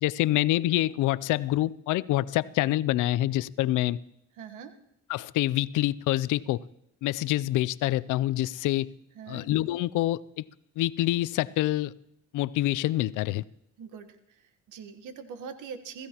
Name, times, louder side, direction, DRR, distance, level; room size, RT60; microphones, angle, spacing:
voice 1, 0.0-4.0 5.1-6.6 7.0-8.9 9.3-10.4 10.8-11.9 12.3-13.4, left 15 dB, 85° left, 18 dB, 0.5 m, -26 dB
voice 2, 4.4-4.8 9.2-9.5 13.8-16.1, right 6 dB, 85° right, 8 dB, 1.3 m, -43 dB
27.0 x 15.0 x 2.9 m, 0.77 s
cardioid pair, 90°, 30 cm